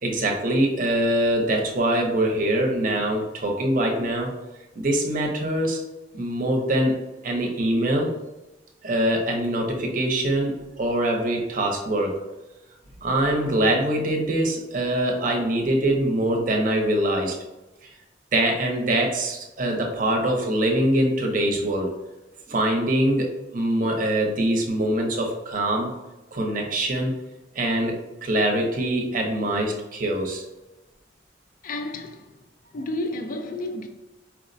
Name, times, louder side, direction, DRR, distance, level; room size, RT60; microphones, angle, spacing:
voice 1, 0.0-4.4 4.8-5.8 6.1-6.9 7.2-8.2 8.8-12.2 13.0-17.4 18.3-21.9 22.5-26.0 26.3-27.1 27.5-30.4, right 1 dB, 50° right, 0.6 m, -23 dB
voice 2, 31.6-32.4 32.7-33.9, left 1 dB, 45° left, 0.3 m, -31 dB
4.5 x 2.1 x 2.5 m
head